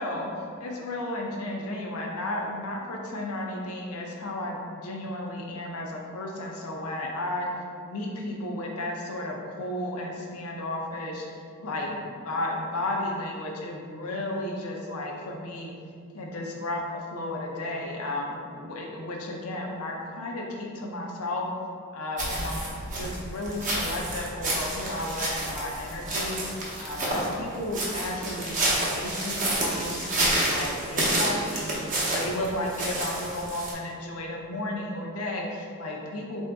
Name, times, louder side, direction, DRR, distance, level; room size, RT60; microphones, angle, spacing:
voice 1, 0.0-7.5 7.8-15.7 16.1-21.5 21.9-26.4 26.8-36.4, left 1 dB, 70° left, 0 dB, 0.6 m, -33 dB
sound 1, 22.2-33.7, right 1 dB, 35° right, 0.7 m, -29 dB
3.7 x 2.7 x 3.4 m, 2.3 s
head